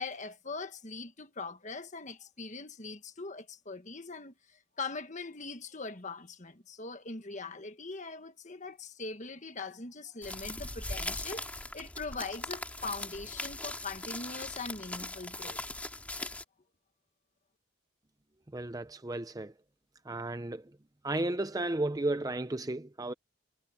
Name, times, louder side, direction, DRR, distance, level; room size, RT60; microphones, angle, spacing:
voice 1, 0.0-15.6, left 3 dB, 35° left, 1.5 m, -41 dB
sound 1, 10.2-16.4, left 2 dB, 5° left, 2.0 m, -40 dB
voice 2, 18.5-19.5 20.1-20.6 21.0-23.1, right 2 dB, 15° right, 0.5 m, -33 dB
head